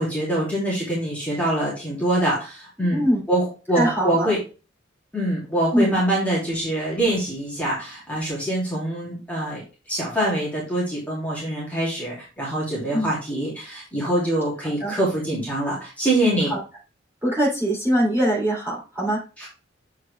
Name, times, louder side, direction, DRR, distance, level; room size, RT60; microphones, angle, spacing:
voice 1, 0.0-4.4 5.1-9.6 9.9-16.5 19.4-19.5, right 1 dB, 10° left, -6 dB, 2.5 m, -24 dB
voice 2, 3.7-4.3 5.7-6.0 12.9-13.1 14.8-14.9 16.5-16.6 17.2-19.2, right 1 dB, 10° right, -6 dB, 2.8 m, -22 dB
7.3 x 4.7 x 3.3 m, 0.33 s
head